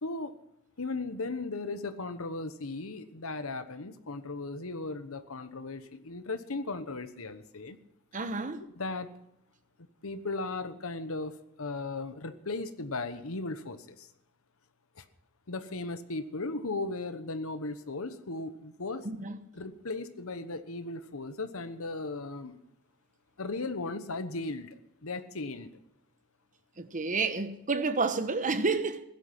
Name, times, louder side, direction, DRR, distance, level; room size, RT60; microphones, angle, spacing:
voice 1, 0.0-0.4 0.8-7.8 8.5-9.1 10.0-14.1 15.0-15.1 15.5-19.1 19.5-22.6 23.4-24.7 25.0-25.7, left 3 dB, 70° left, 1.2 m, -36 dB
voice 2, 8.1-8.6 19.0-19.4 26.8-29.0, right 4 dB, 35° right, 1.0 m, -30 dB
16.0 x 12.0 x 5.9 m
head